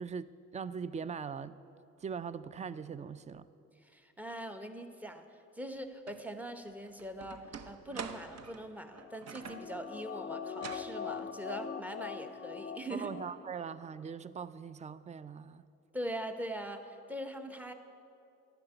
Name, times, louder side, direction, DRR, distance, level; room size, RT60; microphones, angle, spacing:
voice 1, 0.0-1.6 2.0-3.4 12.9-15.6, right 6 dB, 25° right, 16 dB, 0.4 m, -41 dB
voice 2, 3.8-5.2 5.5-7.4 7.7-13.1 15.9-17.7, right 1 dB, 5° right, 7 dB, 0.8 m, -42 dB
sound 1, 6.1-6.2 6.7-9.7 10.5-10.9, right 7 dB, 60° right, 0.7 m, -46 dB
sound 2, 9.0-13.7 14.1-14.2, left 6 dB, 35° left, 0.6 m, -42 dB
11.5 x 5.9 x 9.1 m, 2.7 s
cardioid pair, 90°, 30 cm